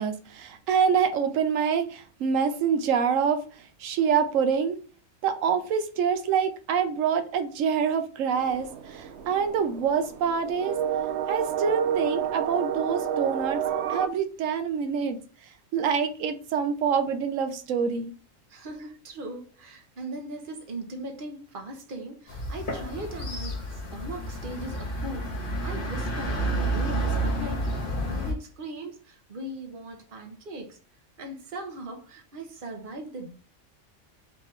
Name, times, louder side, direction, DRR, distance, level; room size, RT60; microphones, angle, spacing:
voice 1, 0.0-4.8 5.2-10.8 11.3-13.6 13.9-15.2 15.7-18.1, right 7 dB, 90° right, 1.1 m, -26 dB
sound 1, 8.3-14.1, right 9 dB, 65° right, 0.8 m, -30 dB
voice 2, 18.5-30.8 31.2-33.3, right 2 dB, 45° right, 1.1 m, -39 dB
sound 2, 22.3-28.3, right 1 dB, 45° left, 1.4 m, -30 dB
4.6 x 3.5 x 3.2 m
omnidirectional pair, 1.3 m